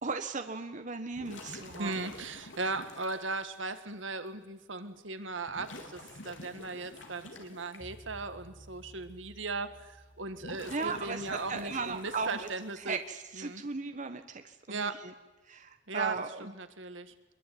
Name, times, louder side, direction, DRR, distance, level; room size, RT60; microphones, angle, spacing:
voice 1, 0.0-2.1 10.7-12.5 12.8-15.1 15.4-16.5, right 4 dB, 40° right, 7 dB, 1.3 m, -37 dB
sound 1, 1.1-3.2 4.3-4.4 5.5-7.8 10.2-12.8, left 2 dB, 70° left, 3.9 m, -48 dB
voice 2, 1.8-13.0 13.4-13.6 14.7-15.0 15.9-17.1, right 3 dB, 70° right, 10 dB, 1.9 m, -37 dB
sound 2, 7.8-12.3, right 1 dB, 30° left, 6.6 m, -55 dB
24.5 x 22.0 x 9.4 m, 1.1 s
head